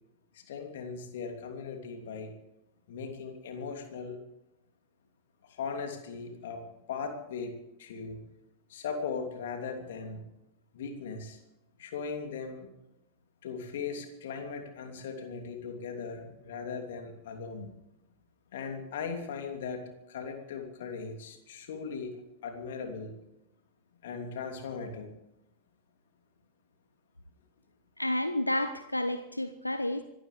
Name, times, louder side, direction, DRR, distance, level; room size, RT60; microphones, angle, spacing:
voice 1, 0.3-2.3 2.9-4.2 5.4-8.2 8.7-10.2 10.7-11.4 11.8-12.7 13.4-17.7 18.5-19.8 20.1-22.2 22.4-23.1 24.0-25.1, left 5 dB, 60° left, 4 dB, 2.9 m, -38 dB
voice 2, 28.0-30.0, left 1 dB, 85° left, 11 dB, 0.7 m, -30 dB
25.5 x 14.0 x 3.4 m, 0.88 s
figure-of-eight pair, 90°, 0 cm